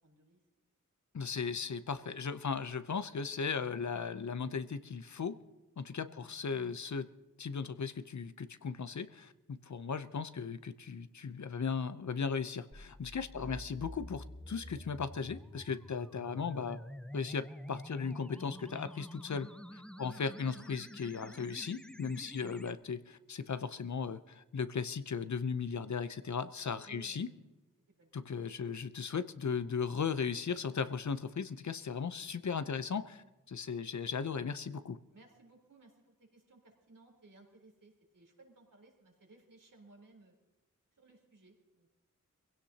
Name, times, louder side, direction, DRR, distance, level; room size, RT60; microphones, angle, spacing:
voice 1, 0.0-0.4 6.0-6.3 13.3-13.5 19.9-20.1 22.3-22.4 26.8-27.4 28.0-28.1 28.5-28.7 35.1-40.3 40.9-42.0, right 3 dB, 75° right, -1 dB, 4.0 m, -61 dB
voice 2, 1.1-5.4 5.8-7.1 7.4-16.8 17.1-27.3 28.1-35.0, left 5 dB, 60° left, 12 dB, 0.7 m, -37 dB
sound 1, 12.7-22.7, equal, 5° left, 0.8 m, -48 dB
22.5 x 16.5 x 2.9 m, 1.1 s
cardioid pair, 50°, 32 cm